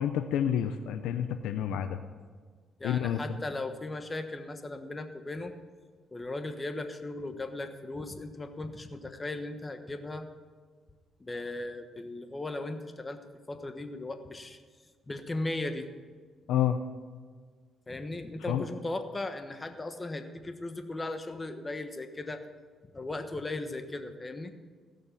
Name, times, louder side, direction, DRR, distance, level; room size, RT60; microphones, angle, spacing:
voice 1, 0.0-2.0 2.8-3.2 16.5-16.8 18.5-18.6, left 10 dB, 85° left, 8 dB, 0.6 m, -29 dB
voice 2, 2.8-5.5 6.1-10.3 11.2-13.2 13.5-14.6 15.1-15.9 17.9-22.4 22.9-24.6, left 2 dB, 20° left, 8 dB, 1.2 m, -37 dB
16.5 x 6.6 x 7.2 m, 1.5 s
cardioid pair, 90°, 0 cm